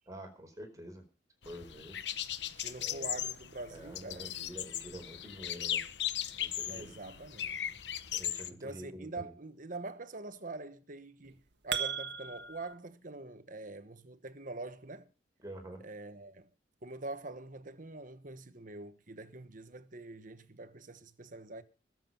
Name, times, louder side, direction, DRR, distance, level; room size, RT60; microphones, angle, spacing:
voice 1, 0.1-1.0 1.4-2.0 2.7-3.2 3.7-5.8 6.4-6.9 8.1-9.3 15.4-15.8, right 1 dB, 20° right, 4.5 m, -47 dB
sound 1, 1.4-8.5, left 10 dB, 65° left, 1.0 m, -38 dB
voice 2, 2.6-4.3 6.7-7.8 8.5-15.1 15.8-16.5 16.8-21.6, right 2 dB, 45° right, 1.3 m, -45 dB
sound 2, 11.2-12.7, right 7 dB, 65° right, 1.5 m, -37 dB
21.0 x 7.5 x 5.8 m
head